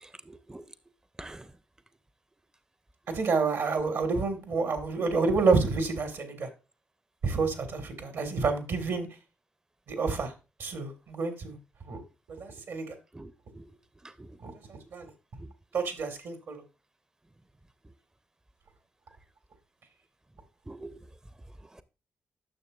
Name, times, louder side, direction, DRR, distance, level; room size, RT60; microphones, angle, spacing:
voice 1, 0.0-0.6 1.2-1.5 13.1-13.7 14.2-14.3 20.7-21.0, right 2 dB, 15° right, 0.5 m, -45 dB
voice 2, 3.1-6.5 7.2-9.1 9.9-10.3 10.6-11.6 11.9-12.0 12.3-12.9 14.4-15.1 15.7-16.6, right 4 dB, 75° right, 1.6 m, -29 dB
9.7 x 6.4 x 2.4 m
supercardioid pair, 45°, 5 cm